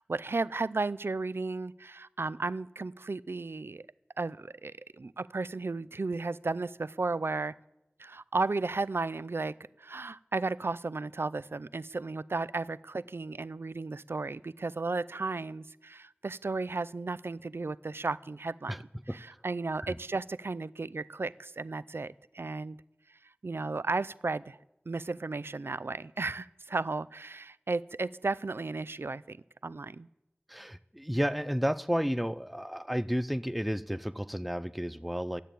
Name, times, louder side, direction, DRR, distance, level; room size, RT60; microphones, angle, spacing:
voice 1, 0.0-3.8 4.2-7.5 8.0-9.5 9.8-18.8 19.1-22.8 23.4-24.6 24.9-29.4 29.6-30.1, right 3 dB, 75° right, 17 dB, 0.4 m, -34 dB
voice 2, 30.5-35.4, equal, ahead, 14 dB, 0.5 m, -32 dB
12.5 x 8.3 x 9.1 m, 0.91 s
wide cardioid pair, 40°, 4 cm